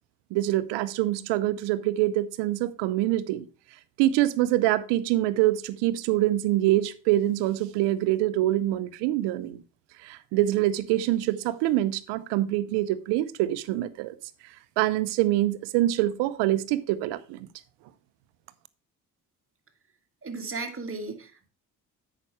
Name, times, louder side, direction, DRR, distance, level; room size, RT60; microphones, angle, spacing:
voice 1, 0.3-3.5 4.0-9.6 10.0-14.1 14.8-17.5, right 14 dB, 80° right, 0.8 m, -25 dB
voice 2, 20.2-21.5, right 3 dB, 30° right, 1.9 m, -35 dB
8.3 x 6.0 x 4.7 m
hypercardioid pair, 50°, 42 cm